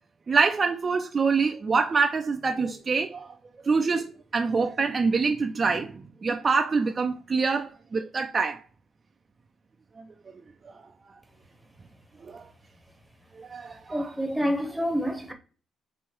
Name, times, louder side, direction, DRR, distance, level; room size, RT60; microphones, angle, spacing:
voice 1, 0.3-3.3 3.6-8.6 12.2-12.5 13.4-14.2, right 4 dB, 35° right, 0.4 m, -25 dB
voice 2, 13.9-15.3, equal, 5° right, 0.8 m, -27 dB
3.5 x 3.1 x 4.4 m
cardioid pair, 115°, 0 cm